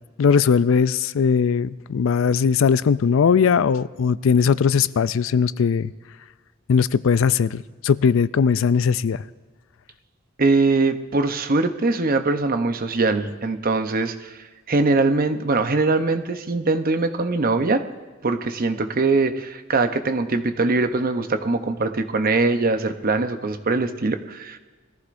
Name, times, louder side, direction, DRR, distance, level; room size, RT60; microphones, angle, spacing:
voice 1, 0.2-5.9 6.7-9.2, left 6 dB, 75° left, 17 dB, 0.4 m, -19 dB
voice 2, 10.4-17.8 18.2-24.6, right 3 dB, 45° right, 8 dB, 0.8 m, -22 dB
21.0 x 14.5 x 2.6 m, 1.4 s
head